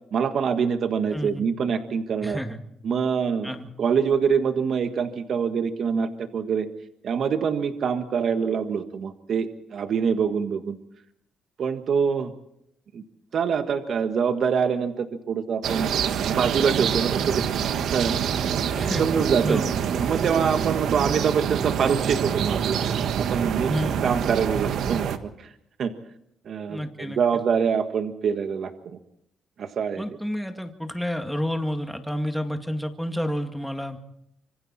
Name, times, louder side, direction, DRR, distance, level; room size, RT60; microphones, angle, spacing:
voice 1, 0.1-2.4 2.8-3.5 3.8-6.7 7.0-10.8 11.6-12.3 12.9-13.0 13.3-15.9 16.2-17.4 17.9-18.2 19.0-19.6 19.9-22.8 23.2-23.7 24.0-25.1 25.8-25.9 26.4-28.7 29.6-30.0, right 6 dB, 60° right, 8 dB, 1.6 m, -25 dB
voice 2, 1.1-1.5 2.2-2.6 3.4-3.7 18.7-19.1 19.4-19.8 23.7-24.1 26.7-27.2 30.0-34.0, equal, ahead, 5 dB, 2.1 m, -30 dB
sound 1, 15.6-25.2, right 8 dB, 75° right, 1.4 m, -26 dB
25.5 x 24.5 x 4.3 m, 0.75 s
cardioid pair, 90°, 0 cm